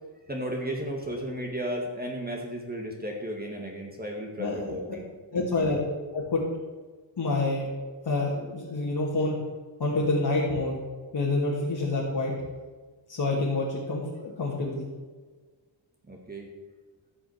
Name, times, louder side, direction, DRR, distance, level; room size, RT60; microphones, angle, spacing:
voice 1, 0.3-5.1 5.3-5.8 16.1-16.5, equal, 20° right, 0 dB, 2.0 m, -34 dB
voice 2, 4.4-4.8 5.3-6.4 7.2-7.7 8.0-9.3 9.8-10.8 11.1-12.3 13.1-14.9, left 2 dB, 55° left, -6 dB, 3.1 m, -27 dB
14.0 x 6.2 x 8.1 m, 1.4 s
wide cardioid pair, 95°, 46 cm